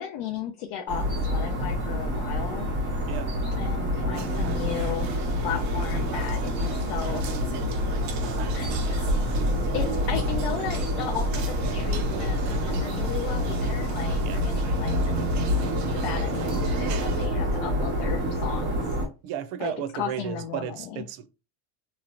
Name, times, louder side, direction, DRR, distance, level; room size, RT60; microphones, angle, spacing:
voice 1, 0.0-2.7 3.5-5.1 5.4-7.3 8.5-9.3 9.7-15.0 15.9-18.9 19.6-21.0, left 9 dB, 65° left, 0.6 m, -35 dB
sound 1, 0.9-19.1, equal, 25° right, 1.5 m, -27 dB
sound 2, 4.1-17.3, right 7 dB, 40° right, 0.6 m, -40 dB
voice 2, 19.2-21.3, right 10 dB, 85° right, 0.7 m, -33 dB
3.1 x 3.1 x 2.5 m
cardioid pair, 155°, 46 cm